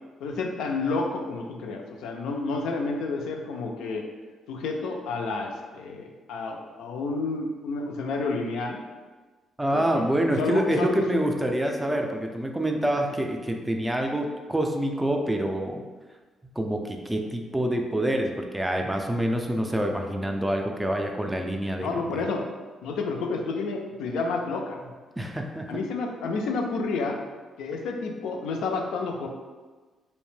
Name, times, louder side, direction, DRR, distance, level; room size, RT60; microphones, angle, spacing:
voice 1, 0.2-4.0 4.5-8.8 9.7-11.2 13.1-13.2 21.8-22.5 22.8-24.8 25.7-27.2 27.6-29.3, left 3 dB, 85° left, 2 dB, 0.3 m, -30 dB
voice 2, 9.6-15.8 16.6-22.2 25.2-25.7, right 1 dB, 10° right, 2 dB, 0.3 m, -26 dB
2.7 x 2.1 x 3.1 m, 1.3 s
cardioid pair, 90°, 0 cm